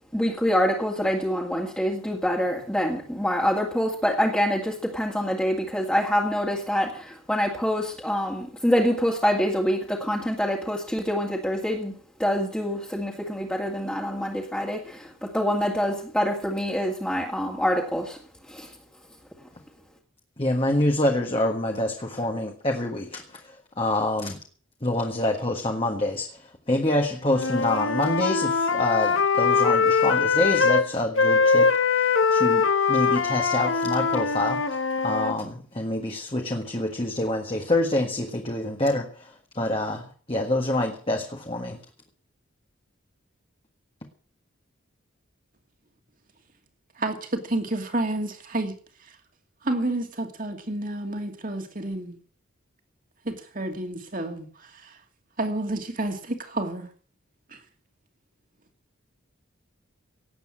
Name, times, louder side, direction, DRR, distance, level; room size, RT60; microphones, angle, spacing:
voice 1, 0.1-11.9 12.2-18.2 18.5-18.7, equal, 5° left, 2.1 m, -25 dB
voice 2, 20.4-24.4 24.8-41.8, left 1 dB, 25° left, 1.6 m, -26 dB
Wind instrument woodwind instrument, 27.3-30.9 31.2-35.4, left 5 dB, 70° left, 1.5 m, -22 dB
voice 3, 47.0-49.2 49.6-52.2 53.2-55.0 55.4-56.9 57.5-57.6, right 2 dB, 40° right, 2.5 m, -30 dB
18.0 x 8.3 x 7.4 m
head